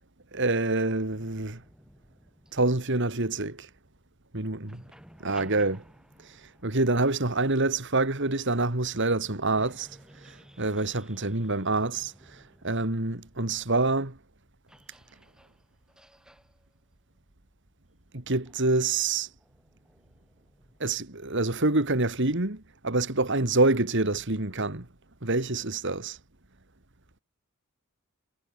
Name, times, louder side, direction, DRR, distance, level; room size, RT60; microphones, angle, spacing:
voice 1, 0.3-1.6 2.5-3.7 4.3-4.6 5.2-5.8 6.6-9.9 10.2-14.2 18.1-19.3 20.8-24.9 25.2-26.2, right 2 dB, 55° right, 2.4 m, -26 dB
sound 1, 1.1-4.3 4.6-8.5 9.1-9.2 9.5-20.9, equal, 5° right, 7.5 m, -56 dB
head